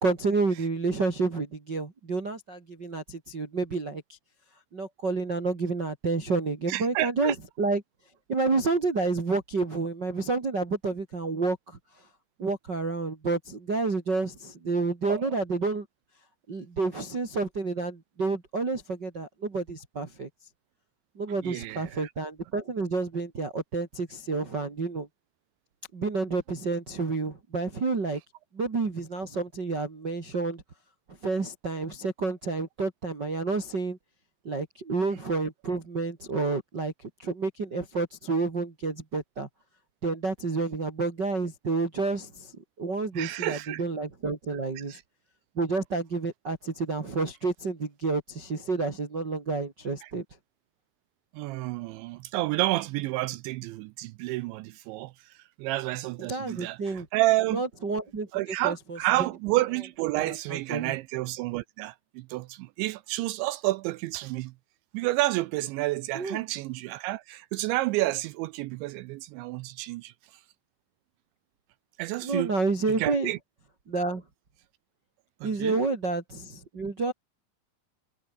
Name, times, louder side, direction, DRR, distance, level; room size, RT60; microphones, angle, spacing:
voice 1, 0.0-4.2 4.7-7.8 8.3-11.8 12.4-15.9 16.5-20.3 21.2-25.1 25.9-28.2 28.5-30.6 31.2-34.0 34.4-36.9 37.2-39.5 40.0-42.5 42.8-44.9 45.5-50.2 56.3-57.1 57.5-58.3 58.6-59.0 60.2-60.9 66.1-66.4 72.2-73.3 73.9-74.2 75.4-77.1, right 3 dB, 30° right, 2.3 m, -29 dB
voice 2, 6.7-7.4 15.1-15.4 21.4-22.1 43.1-43.8 44.8-45.0 50.0-50.1 51.3-57.6 58.3-64.5 64.9-70.4 72.0-72.5 73.0-73.4 75.4-75.8, right 18 dB, 80° right, 2.7 m, -30 dB
omnidirectional pair, 5.8 m